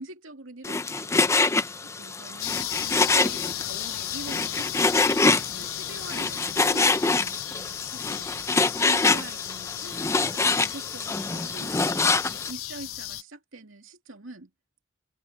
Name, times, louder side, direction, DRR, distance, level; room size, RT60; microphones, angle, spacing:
voice 1, 0.0-1.5 1.8-4.8 5.2-14.5, right 2 dB, 85° right, 2.6 m, -44 dB
Frying (food), 0.6-12.5, left 3 dB, 15° left, 0.5 m, -25 dB
sound 1, 2.4-13.2, left 15 dB, 90° left, 0.4 m, -36 dB
head